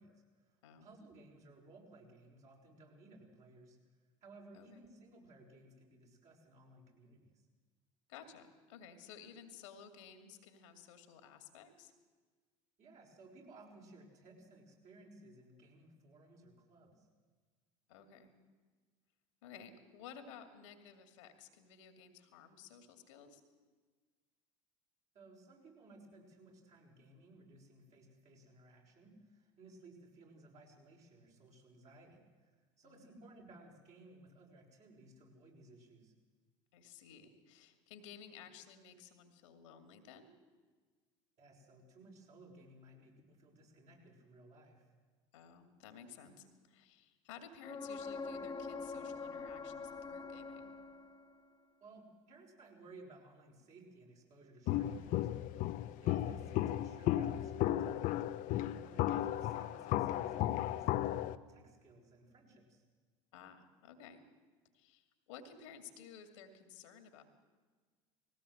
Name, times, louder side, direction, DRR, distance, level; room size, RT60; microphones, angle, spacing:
voice 1, 0.0-3.8 4.2-7.5 12.8-17.1 25.1-32.5 32.8-36.1 41.4-44.9 51.8-55.6 56.0-58.0 58.5-62.8, right 2 dB, 45° right, -1 dB, 5.8 m, -59 dB
voice 2, 8.1-11.9 17.9-18.3 19.4-23.4 32.8-33.1 36.7-40.3 45.3-50.7 63.3-64.2 64.7-67.2, left 7 dB, 75° left, 7 dB, 2.4 m, -55 dB
sound 1, 47.6-51.4 55.1-55.2, left 4 dB, 25° left, 1.6 m, -44 dB
Walk footsteps, 54.7-61.3, left 13 dB, 55° left, 0.8 m, -34 dB
19.5 x 17.0 x 7.9 m, 1.4 s
hypercardioid pair, 80°, 16 cm